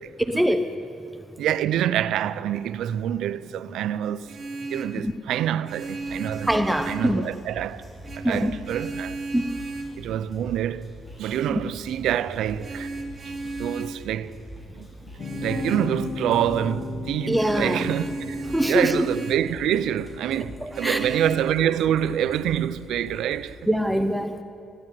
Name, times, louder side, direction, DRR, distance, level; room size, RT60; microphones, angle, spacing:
voice 1, 0.2-0.7 5.0-5.1 6.4-7.3 8.2-8.5 9.3-9.5 11.5-11.6 17.3-17.9 18.5-18.9 20.6-21.0 23.7-24.4, equal, 5° right, 1.0 m, -23 dB
voice 2, 1.4-4.4 4.7-6.5 6.9-7.9 8.2-9.2 10.0-12.9 13.6-14.4 14.7-14.9 15.3-23.7, right 10 dB, 80° right, 0.7 m, -26 dB
Vehicle horn car horn honking, 4.1-5.0 5.6-7.1 8.0-10.0 12.6-14.0 15.2-15.9 17.3-19.5 20.7-21.4, right 2 dB, 35° right, 2.7 m, -34 dB
sound 1, 5.7-23.5, equal, 20° left, 5.0 m, -44 dB
sound 2, 15.2-20.7, left 4 dB, 50° left, 0.7 m, -36 dB
20.0 x 15.0 x 9.4 m
cardioid pair, 90°, 0 cm